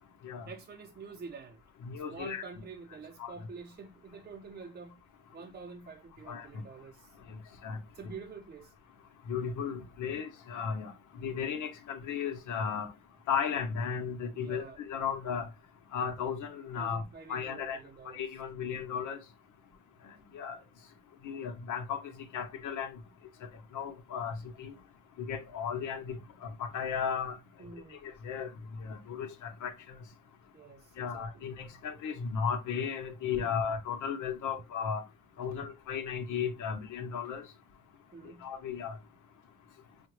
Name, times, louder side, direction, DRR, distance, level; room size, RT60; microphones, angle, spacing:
voice 1, 0.5-1.6 2.1-5.0 5.3-7.1 7.9-8.7 14.3-14.8 16.7-18.2 27.6-28.0 30.5-31.5 33.4-33.7 38.1-38.5, right 5 dB, 30° right, 0.6 m, -47 dB
voice 2, 1.8-2.4 3.2-3.3 6.3-6.5 7.6-7.8 9.3-10.9 11.2-12.9 13.3-15.5 15.9-17.0 17.3-17.8 18.1-19.2 20.3-20.6 21.2-22.0 22.3-22.9 23.7-24.7 25.2-27.4 28.0-28.5 28.8-29.7 31.0-35.0 35.4-37.4 38.4-39.0, left 7 dB, 80° left, 1.0 m, -35 dB
5.8 x 2.2 x 3.1 m
cardioid pair, 90°, 30 cm